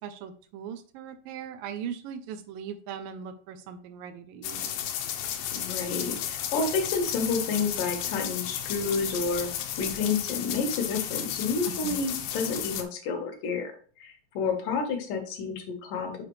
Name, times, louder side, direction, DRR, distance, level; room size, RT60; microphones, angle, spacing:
voice 1, 0.0-4.8 11.8-12.0, right 7 dB, 80° right, 10 dB, 2.1 m, -39 dB
sound 1, 4.4-12.8, left 10 dB, 85° left, 2.6 m, -33 dB
voice 2, 5.5-9.5 9.8-13.7 14.0-16.2, left 4 dB, 65° left, 4 dB, 2.5 m, -30 dB
6.8 x 4.8 x 3.1 m, 0.43 s
omnidirectional pair, 4.4 m